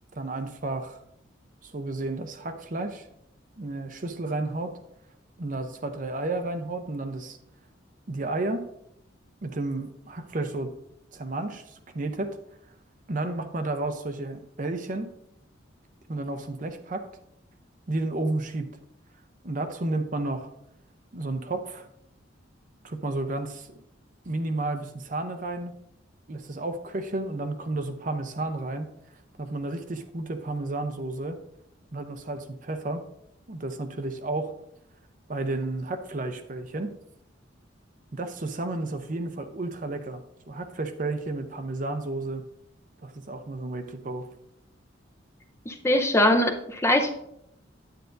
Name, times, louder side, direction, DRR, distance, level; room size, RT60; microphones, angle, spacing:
voice 1, 0.2-1.0 1.6-3.1 3.6-4.8 5.4-7.4 8.1-8.6 9.4-10.7 11.1-12.4 13.1-15.1 16.1-17.1 17.9-18.7 19.4-20.5 21.1-21.9 22.8-23.8 24.2-25.8 26.3-28.9 29.4-31.4 31.9-33.0 33.5-34.5 35.3-37.0 38.1-42.4 43.0-44.3, right 2 dB, 45° right, 7 dB, 0.7 m, -32 dB
voice 2, 45.7-47.1, left 1 dB, 15° left, 5 dB, 0.6 m, -22 dB
9.2 x 8.9 x 2.6 m, 0.77 s
head